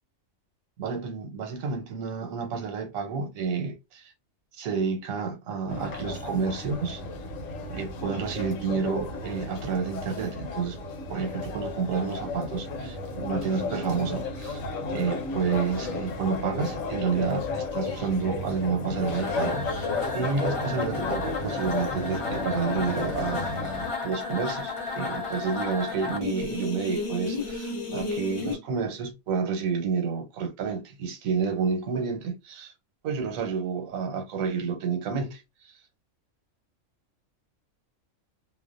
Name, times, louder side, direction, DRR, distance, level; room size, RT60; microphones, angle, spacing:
voice 1, 0.8-4.1 4.6-7.0 7.7-10.8 11.1-14.6 14.9-32.7 33.0-35.4, right 5 dB, 90° right, 1.1 m, -30 dB
sound 1, 5.7-23.9, left 3 dB, 75° left, 1.0 m, -33 dB
sound 2, 19.1-28.6, left 4 dB, 40° left, 0.4 m, -33 dB
2.5 x 2.0 x 2.4 m
omnidirectional pair, 1.4 m